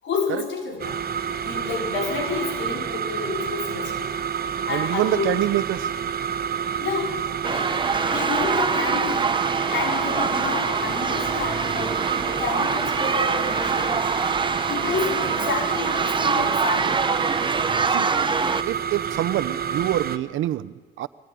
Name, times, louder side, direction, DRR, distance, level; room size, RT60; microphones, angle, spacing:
voice 1, 0.0-4.1 4.7-5.3 6.8-7.2 7.5-7.7 8.0-14.3 14.7-17.0, left 5 dB, 70° left, 1 dB, 5.2 m, -30 dB
sound 1, 0.8-20.2, right 8 dB, 50° right, 1.3 m, -29 dB
voice 2, 4.7-5.9 17.8-18.1 18.6-21.1, right 13 dB, 80° right, 16 dB, 0.8 m, -26 dB
sound 2, 7.4-18.6, right 4 dB, 25° right, 0.8 m, -25 dB
23.5 x 18.0 x 9.4 m, 1.5 s
cardioid pair, 90°, 20 cm